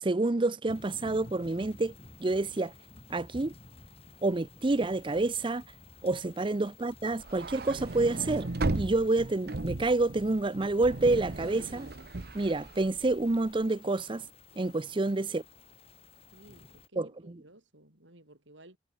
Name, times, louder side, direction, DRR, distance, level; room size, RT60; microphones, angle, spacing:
voice 1, 0.0-1.9 2.2-2.7 3.1-3.5 4.2-5.6 6.0-11.9 12.3-14.3 14.6-15.4 17.0-17.1, right 2 dB, 25° right, 0.6 m, -28 dB
sound 1, 0.7-16.9, left 2 dB, 30° left, 7.6 m, -53 dB
sound 2, 7.2-13.5, right 2 dB, 55° right, 0.9 m, -36 dB
voice 2, 14.5-15.0 16.3-18.8, right 1 dB, 80° right, 7.1 m, -56 dB
head